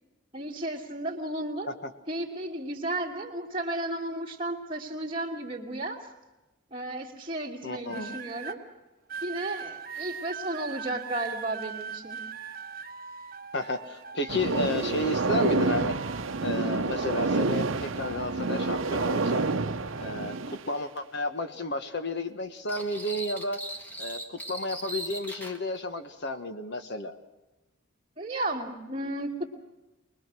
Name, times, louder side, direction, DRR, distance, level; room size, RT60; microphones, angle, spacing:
voice 1, 0.3-1.7 2.1-6.0 6.7-8.6 9.2-12.2 28.2-29.5, right 1 dB, 25° right, -2 dB, 2.6 m, -33 dB
voice 2, 7.6-8.2 13.5-15.9 16.4-19.5 20.0-23.6 24.0-27.1, left 1 dB, 55° left, 8 dB, 1.4 m, -32 dB
sound 1, 7.9-8.6 9.1-14.6 15.0-17.6 17.9-20.5 21.2-21.5, right 6 dB, 45° right, 1.1 m, -42 dB
sound 2, 14.3-20.7, right 3 dB, 75° right, 0.8 m, -28 dB
sound 3, 22.7-25.6, right 1 dB, 10° left, 1.7 m, -39 dB
24.0 x 20.5 x 6.2 m, 1.1 s
head